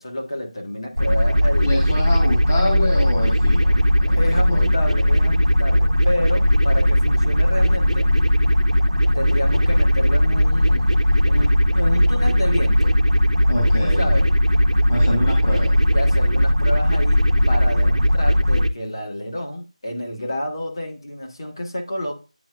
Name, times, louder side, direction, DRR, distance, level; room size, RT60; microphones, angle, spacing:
voice 1, 0.0-1.8 4.2-8.1 9.1-13.0 13.8-14.3 15.9-17.2 17.5-22.2, left 1 dB, 35° left, 1.4 m, -29 dB
sound 1, 1.0-18.7, equal, 75° right, 0.9 m, -18 dB
voice 2, 1.6-4.7 13.5-14.1 14.9-15.8, left 1 dB, 20° left, 0.9 m, -26 dB
9.3 x 4.4 x 2.4 m
figure-of-eight pair, 165°, 4 cm